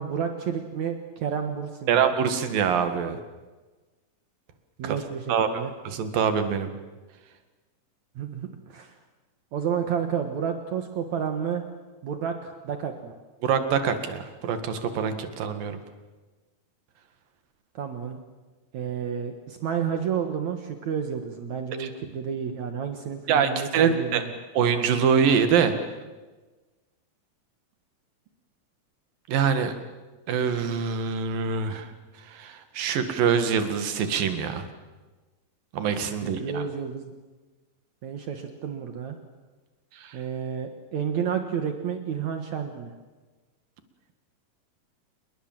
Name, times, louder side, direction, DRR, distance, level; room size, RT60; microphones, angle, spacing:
voice 1, 0.0-2.0 4.8-5.7 8.2-9.0 9.5-11.6 12.0-13.1 17.7-18.2 18.7-24.3 36.2-37.1 38.0-39.2 40.1-42.9, right 7 dB, 60° right, 6 dB, 2.6 m, -31 dB
voice 2, 1.9-3.2 4.8-5.0 5.3-6.7 13.4-15.8 21.8-21.9 23.3-24.2 24.5-25.7 29.3-29.7 30.3-31.9 32.3-34.6 35.7-36.6 40.0-40.1, right 7 dB, 85° right, 8 dB, 3.6 m, -24 dB
27.5 x 22.0 x 7.6 m, 1.2 s
omnidirectional pair, 3.9 m